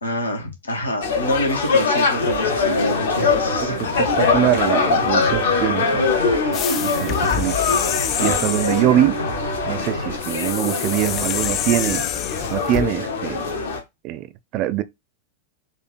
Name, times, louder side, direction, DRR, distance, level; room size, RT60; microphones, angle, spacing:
voice 1, 0.0-3.7, left 1 dB, 75° left, 1.4 m, -26 dB
sound 1, 1.0-13.8, left 4 dB, 55° left, 1.1 m, -22 dB
sound 2, 2.2-10.2, right 2 dB, 75° right, 0.7 m, -31 dB
voice 2, 3.6-6.0 6.8-7.8 8.2-9.2 9.7-12.0 12.5-13.5 14.0-14.3 14.5-14.8, right 13 dB, 40° right, 0.4 m, -23 dB
sound 3, 6.5-8.9 10.2-12.9, left 11 dB, 35° left, 0.3 m, -27 dB
4.4 x 2.6 x 4.1 m
figure-of-eight pair, 90°, 0 cm